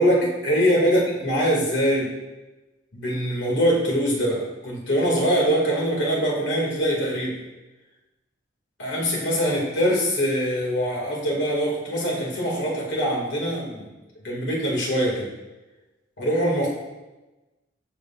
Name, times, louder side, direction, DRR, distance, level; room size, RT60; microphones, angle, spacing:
voice 1, 0.0-2.1 2.9-7.4 8.8-13.9 14.2-15.3 16.2-16.7, equal, 70° left, -3 dB, 2.6 m, -23 dB
13.0 x 6.8 x 2.6 m, 1.1 s
head